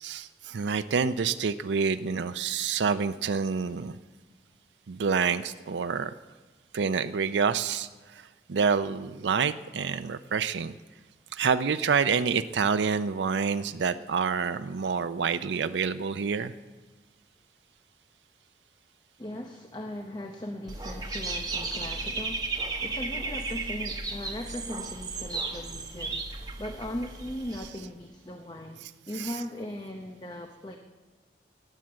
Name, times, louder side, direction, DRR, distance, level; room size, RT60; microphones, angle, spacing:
voice 1, 0.0-4.0 4.9-6.1 6.7-7.9 8.5-10.7 11.3-16.5 29.2-29.3, right 5 dB, 90° right, 11 dB, 0.5 m, -27 dB
voice 2, 19.2-30.8, left 1 dB, 25° left, 4 dB, 0.7 m, -39 dB
Dog / Bird, 20.7-27.7, right 3 dB, 20° right, 1.1 m, -34 dB
19.5 x 7.5 x 7.7 m, 1.3 s
head